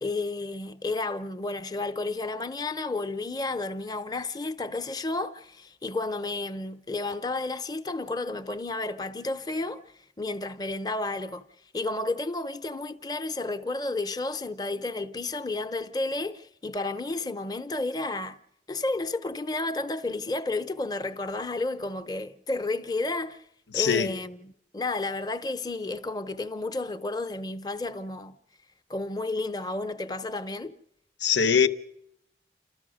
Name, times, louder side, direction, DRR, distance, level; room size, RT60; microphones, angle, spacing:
voice 1, 0.0-9.8 10.2-11.4 11.7-18.4 18.7-23.4 23.7-28.4 28.9-30.7, left 2 dB, 20° left, 0.7 m, -32 dB
voice 2, 23.7-24.1 31.2-31.7, left 7 dB, 80° left, 1.0 m, -22 dB
30.0 x 13.5 x 6.4 m
head